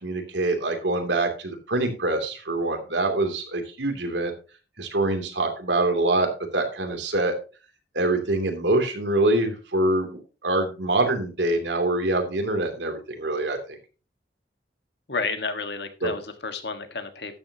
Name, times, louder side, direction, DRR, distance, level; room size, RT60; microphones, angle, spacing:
voice 1, 0.0-4.3 4.8-7.3 7.9-13.8 16.0-16.1, right 2 dB, 85° right, 2.8 m, -25 dB
voice 2, 15.1-17.4, left 4 dB, 70° left, 1.5 m, -31 dB
12.5 x 9.3 x 2.9 m
head